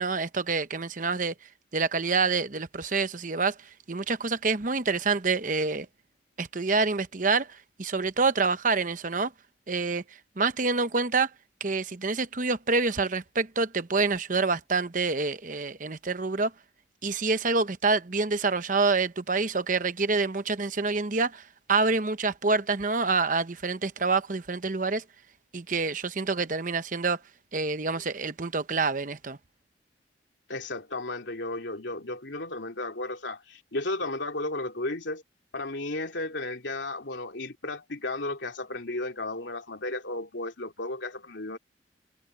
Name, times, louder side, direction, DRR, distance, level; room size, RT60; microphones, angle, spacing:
voice 1, 0.0-1.3 1.7-3.5 3.9-5.9 6.4-7.5 7.8-9.3 9.7-10.0 10.4-11.3 11.6-16.5 17.0-21.4 21.7-25.0 25.5-27.2 27.5-29.4, right 4 dB, 45° right, 0.9 m, -27 dB
voice 2, 30.5-35.2 35.5-41.6, left 2 dB, 70° left, 2.9 m, -34 dB
head